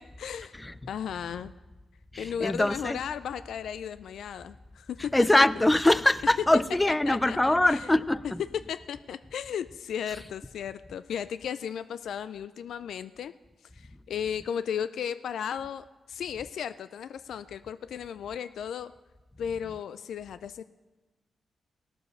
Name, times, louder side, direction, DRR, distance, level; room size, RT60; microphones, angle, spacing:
voice 1, 0.0-0.6 0.9-1.5 2.2-5.6 7.1-7.8 8.7-13.3 13.7-18.9 19.4-20.6, left 8 dB, 85° left, 0.3 m, -35 dB
voice 2, 2.1-3.0 5.1-8.4, left 1 dB, 15° left, 0.4 m, -23 dB
16.5 x 6.9 x 6.6 m
cardioid pair, 85°, 0 cm